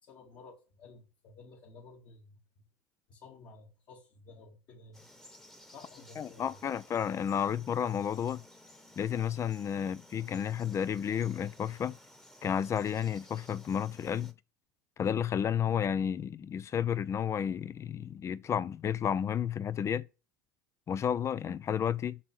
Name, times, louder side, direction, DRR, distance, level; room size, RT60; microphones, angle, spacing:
voice 1, 0.0-2.7 3.1-5.1 5.7-6.6, left 3 dB, 50° left, 2.7 m, -54 dB
Frog, 4.9-14.3, left 1 dB, 5° left, 1.5 m, -56 dB
voice 2, 6.2-8.4 9.0-12.0 12.4-14.3 15.0-20.0 20.9-22.2, left 8 dB, 30° left, 0.8 m, -31 dB
8.6 x 6.3 x 7.9 m
supercardioid pair, 105°, 9 cm